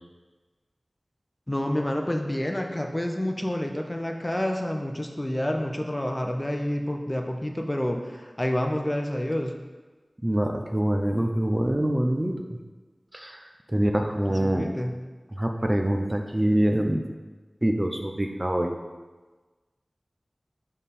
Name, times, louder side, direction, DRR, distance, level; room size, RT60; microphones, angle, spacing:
voice 1, 1.5-9.6 13.7-13.9 14.3-14.9, left 1 dB, 20° left, 3 dB, 0.6 m, -28 dB
voice 2, 10.2-12.6 13.1-14.7 15.3-17.0 17.6-18.7, right 1 dB, 25° right, 3 dB, 0.6 m, -25 dB
5.5 x 5.2 x 4.2 m, 1.3 s
wide cardioid pair, 50°, 0 cm